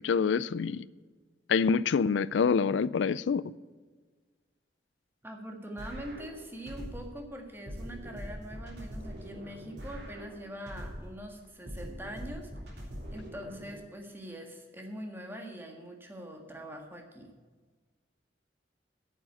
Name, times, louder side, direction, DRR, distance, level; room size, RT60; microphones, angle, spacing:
voice 1, 0.0-0.9 1.5-3.4, left 5 dB, 90° left, 0.4 m, -26 dB
voice 2, 5.2-12.8 13.1-17.3, equal, 10° right, 1.6 m, -43 dB
sound 1, 5.8-7.2 7.7-11.2 11.7-13.8, equal, 65° right, 3.3 m, -42 dB
9.2 x 7.3 x 8.5 m
head